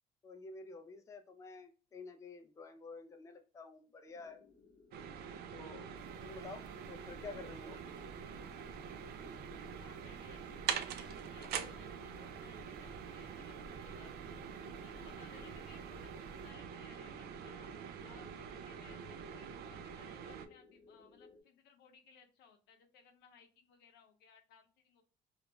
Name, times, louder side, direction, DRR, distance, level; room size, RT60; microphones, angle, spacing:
voice 1, 0.2-4.4 5.5-5.9 6.2-7.8 15.4-15.6, left 3 dB, 20° left, 6 dB, 0.4 m, -50 dB
sound 1, 4.1-21.4, left 4 dB, 40° left, 0.9 m, -61 dB
sound 2, 4.9-20.5, right 8 dB, 70° right, 0.4 m, -45 dB
sound 3, 5.9-16.5, equal, 10° right, 0.9 m, -59 dB
voice 2, 7.7-8.1 9.8-14.4 14.8-17.7 18.0-18.3 18.6-25.0, left 7 dB, 80° left, 4 dB, 0.6 m, -63 dB
2.4 x 2.0 x 2.9 m, 0.35 s
cardioid pair, 110°, 17 cm